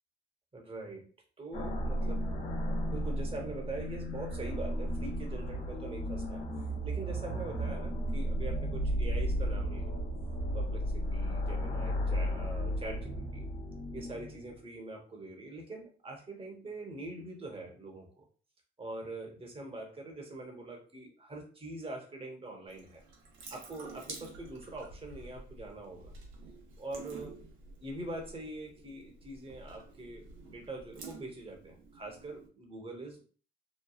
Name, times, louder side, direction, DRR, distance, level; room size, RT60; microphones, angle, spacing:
voice 1, 0.5-1.1 1.4-2.3 2.8-6.4 6.8-9.9 10.5-13.4 13.9-18.2 18.8-23.0 23.5-26.1 26.8-27.4 27.8-33.2, right 2 dB, 25° right, 1 dB, 1.0 m, -43 dB
sound 1, 1.5-14.6, equal, 50° left, 1.0 m, -34 dB
Water tap faucet / Sink (filling or washing) / Drip, 22.7-32.5, right 3 dB, 80° right, 0.8 m, -50 dB
3.0 x 2.2 x 2.3 m, 0.39 s
cardioid pair, 90°, 20 cm